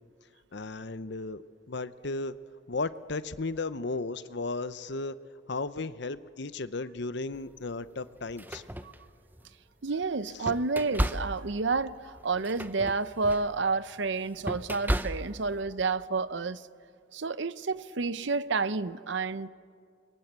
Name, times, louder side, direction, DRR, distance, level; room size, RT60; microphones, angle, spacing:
voice 1, 0.5-2.3 2.7-5.2 5.5-8.6 10.4-10.5, left 3 dB, 60° left, 0.8 m, -35 dB
sound 1, 7.3-7.5 8.2-9.5 10.0-15.6, right 1 dB, 10° right, 0.7 m, -34 dB
voice 2, 9.8-16.6 17.1-19.5, right 4 dB, 60° right, 0.7 m, -30 dB
28.5 x 23.5 x 8.2 m
head